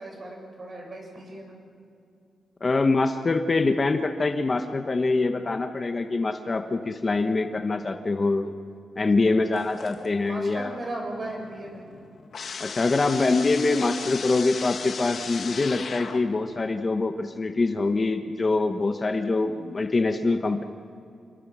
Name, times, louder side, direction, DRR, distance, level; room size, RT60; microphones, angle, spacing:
voice 1, 0.0-1.5 10.2-11.9, right 2 dB, 40° right, 1 dB, 7.0 m, -37 dB
voice 2, 2.6-8.5 9.0-10.7 12.6-20.6, left 3 dB, 30° left, 6 dB, 1.1 m, -24 dB
sound 1, 9.5-10.3 10.7-16.5, left 5 dB, 55° left, 1.7 m, -37 dB
28.5 x 22.0 x 6.3 m, 2.5 s
wide cardioid pair, 130°, 0 cm